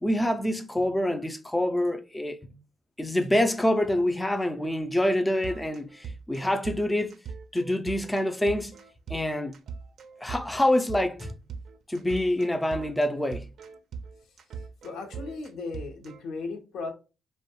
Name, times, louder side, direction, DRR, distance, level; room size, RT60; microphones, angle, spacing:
voice 1, 0.0-2.4 3.0-7.2 7.5-8.8 9.1-9.5 10.2-11.3 11.9-13.5, left 1 dB, 10° left, 0.4 m, -26 dB
sound 1, 5.4-16.2, right 5 dB, 65° right, 0.4 m, -41 dB
voice 2, 14.8-16.9, left 3 dB, 75° left, 0.7 m, -36 dB
2.5 x 2.1 x 2.8 m
cardioid pair, 90°, 0 cm